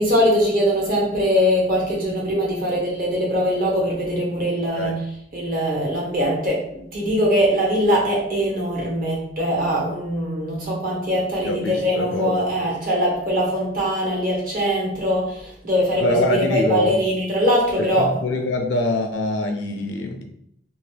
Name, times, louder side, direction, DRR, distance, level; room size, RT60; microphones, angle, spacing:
voice 1, 0.0-5.0 5.3-18.1, equal, 50° right, -3 dB, 1.1 m, -22 dB
voice 2, 11.4-12.7 16.0-16.9 17.9-20.2, left 2 dB, 85° left, 4 dB, 0.6 m, -24 dB
2.9 x 2.7 x 3.3 m, 0.74 s
head